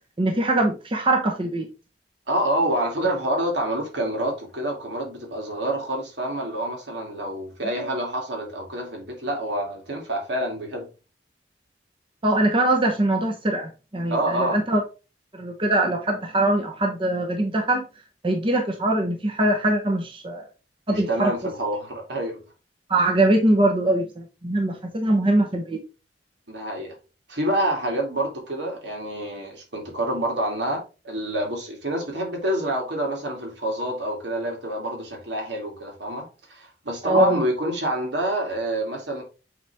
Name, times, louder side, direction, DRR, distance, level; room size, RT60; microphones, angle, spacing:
voice 1, 0.2-1.7 7.8-7.9 12.2-14.8 15.3-17.8 18.2-20.4 20.9-21.3 22.9-25.8 37.0-37.4, right 1 dB, 30° right, 0.9 m, -22 dB
voice 2, 2.3-10.9 14.1-14.6 20.9-22.4 26.5-26.9 27.3-39.2, right 1 dB, 80° right, 2.5 m, -27 dB
8.1 x 3.5 x 3.4 m
head